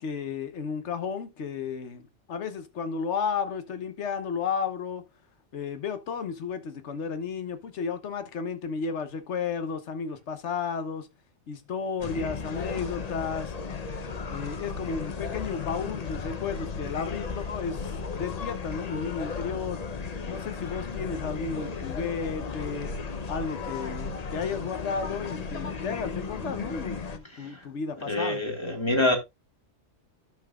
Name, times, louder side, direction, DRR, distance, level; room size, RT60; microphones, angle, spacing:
voice 1, 0.0-2.0 2.3-5.0 5.5-11.1 11.5-13.5 14.3-19.8 20.3-22.9 23.3-28.4, left 6 dB, 65° left, 1.2 m, -33 dB
sound 1, 12.0-27.2, left 5 dB, 40° left, 0.7 m, -35 dB
voice 2, 28.0-29.2, left 2 dB, 20° left, 1.7 m, -26 dB
12.0 x 5.8 x 2.3 m
omnidirectional pair, 1.3 m